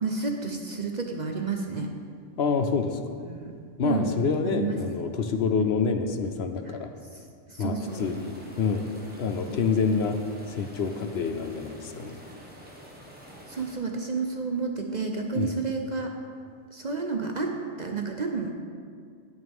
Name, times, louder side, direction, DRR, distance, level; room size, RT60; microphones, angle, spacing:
voice 1, 0.0-1.9 3.2-3.5 3.8-4.1 4.5-4.8 5.6-5.7 7.5-8.1 9.5-9.6 13.5-16.1 16.7-18.5, right 4 dB, 45° right, 2 dB, 0.7 m, -30 dB
voice 2, 2.4-3.1 3.8-6.9 7.6-8.9 9.2-10.2 10.5-12.2 15.3-15.5, left 5 dB, 60° left, 7 dB, 0.8 m, -27 dB
sound 1, 7.9-13.7, equal, 10° right, 1.5 m, -47 dB
17.5 x 6.4 x 3.6 m, 2.2 s
omnidirectional pair, 1.3 m